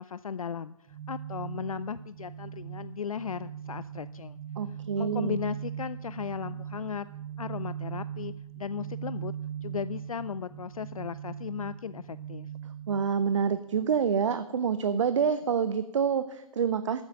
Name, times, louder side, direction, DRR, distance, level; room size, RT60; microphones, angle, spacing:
voice 1, 0.0-4.4 5.0-7.1 7.4-9.3 9.6-12.5, left 7 dB, 75° left, 16 dB, 0.4 m, -36 dB
sound 1, 0.9-13.9, right 9 dB, 30° right, 1.2 m, -40 dB
voice 2, 4.6-5.4 12.9-17.0, right 7 dB, 55° right, 13 dB, 0.6 m, -27 dB
13.5 x 8.0 x 6.4 m, 0.90 s
figure-of-eight pair, 130°, 18 cm